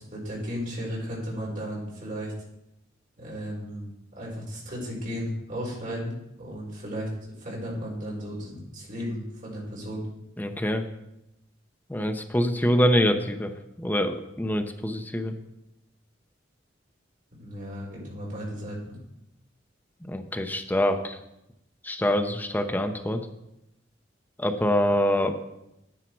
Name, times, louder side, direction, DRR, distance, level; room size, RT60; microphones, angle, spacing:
voice 1, 0.1-2.3 3.2-7.1 7.4-10.0 17.4-19.0, equal, 45° right, -4 dB, 4.5 m, -35 dB
voice 2, 10.4-10.8 11.9-15.3 20.0-21.2 21.8-23.3 24.4-25.3, equal, 10° left, 6 dB, 0.7 m, -25 dB
10.0 x 9.7 x 4.6 m, 0.85 s
head